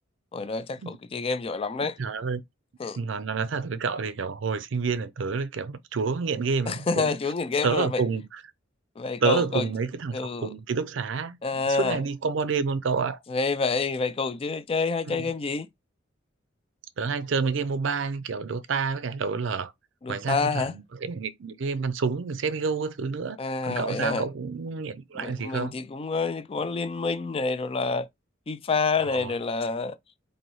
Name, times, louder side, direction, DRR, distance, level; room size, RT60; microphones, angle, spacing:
voice 1, 0.3-2.0 2.8-3.0 6.7-8.0 9.0-9.7 10.1-10.5 11.4-12.0 13.3-15.7 20.0-20.8 23.4-24.2 25.2-28.1 28.5-30.0, left 4 dB, 30° left, 0.3 m, -28 dB
voice 2, 2.0-2.4 3.0-7.2 7.6-8.4 9.2-13.2 15.1-15.3 17.0-19.7 20.1-23.4 23.6-25.7 29.1-29.3, right 5 dB, 65° right, 0.5 m, -29 dB
4.0 x 2.7 x 3.1 m
head